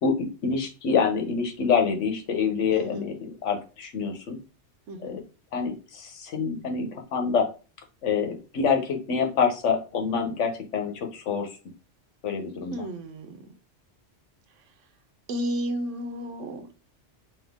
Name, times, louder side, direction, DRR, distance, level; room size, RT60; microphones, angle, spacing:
voice 1, 0.0-4.4 5.0-5.2 5.5-7.5 8.0-11.5 12.2-12.8, left 5 dB, 90° left, 4 dB, 1.2 m, -26 dB
voice 2, 2.7-3.1 4.9-5.2 12.7-13.4 15.3-16.9, equal, 85° right, 8 dB, 1.1 m, -33 dB
3.7 x 2.9 x 3.5 m, 0.33 s
omnidirectional pair, 1.2 m